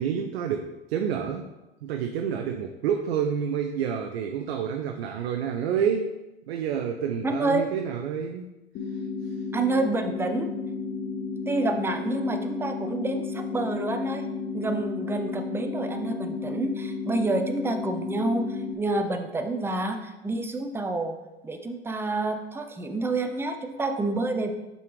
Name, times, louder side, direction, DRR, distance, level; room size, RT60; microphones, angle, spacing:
voice 1, 0.0-1.5 1.8-6.2 6.5-8.5, right 7 dB, 70° right, 4 dB, 0.6 m, -28 dB
voice 2, 7.2-7.7 9.5-10.4 11.5-14.3 14.5-21.2 21.4-24.5, right 2 dB, 10° right, 6 dB, 0.6 m, -28 dB
sound 1, 8.7-18.7, left 4 dB, 35° left, 0.8 m, -33 dB
5.6 x 5.5 x 3.1 m, 0.99 s
hypercardioid pair, 85°, 31 cm